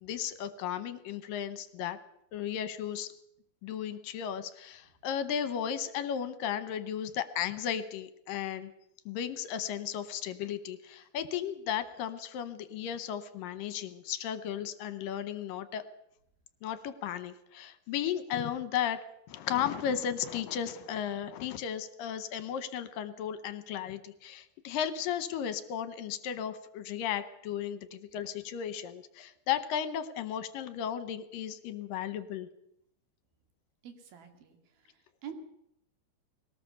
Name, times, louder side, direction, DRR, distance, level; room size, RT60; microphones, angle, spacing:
voice 1, 0.0-2.0 2.3-3.1 3.6-8.7 9.1-15.8 16.6-19.0 19.3-32.5, left 9 dB, 75° left, 13 dB, 2.5 m, -35 dB
voice 2, 33.8-35.3, right 8 dB, 80° right, 7 dB, 4.0 m, -48 dB
21.5 x 18.0 x 6.8 m, 0.76 s
omnidirectional pair, 4.2 m